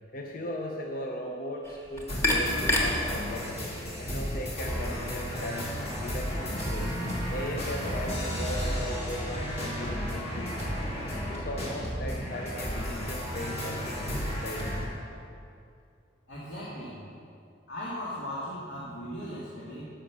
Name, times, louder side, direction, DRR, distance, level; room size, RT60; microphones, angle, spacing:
voice 1, 0.1-3.7 4.0-6.9 7.3-10.9 11.3-14.9, left 1 dB, 50° left, 1 dB, 0.8 m, -38 dB
sound 1, 1.6-6.7, left 1 dB, 15° left, 1.3 m, -33 dB
sound 2, 2.1-14.8, equal, 35° left, 1.9 m, -33 dB
voice 2, 16.3-17.0 17.7-19.9, equal, 70° left, -8 dB, 2.3 m, -37 dB
14.0 x 5.5 x 6.3 m, 2.5 s
head